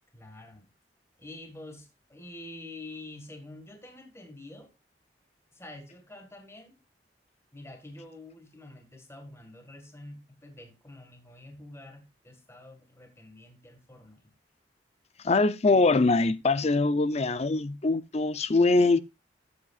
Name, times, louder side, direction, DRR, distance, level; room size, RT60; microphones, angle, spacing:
voice 1, 0.1-0.7 1.2-4.7 5.5-6.8 7.5-14.3, left 2 dB, 15° left, 1.8 m, -47 dB
voice 2, 15.2-19.0, left 3 dB, 35° left, 0.6 m, -23 dB
13.0 x 8.7 x 2.4 m
head